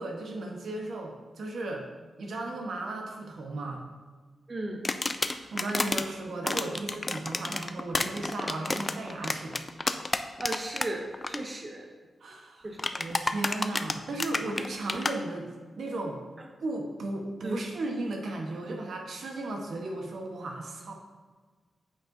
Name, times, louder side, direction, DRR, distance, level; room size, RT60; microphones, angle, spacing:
voice 1, 0.0-1.8 2.2-3.8 5.5-9.6 12.2-15.5 15.8-16.2 16.6-20.9, right 2 dB, 75° right, 1 dB, 1.0 m, -35 dB
voice 2, 4.5-4.8 7.3-7.4 10.4-11.9 12.6-12.8 17.4-17.6, right 1 dB, 25° right, 2 dB, 0.6 m, -35 dB
sound 1, 4.8-6.0 6.4-10.9 11.1-11.4 12.8-15.1, left 2 dB, 25° left, 0.3 m, -30 dB
8.6 x 5.6 x 2.6 m, 1.4 s
wide cardioid pair, 130°, 0 cm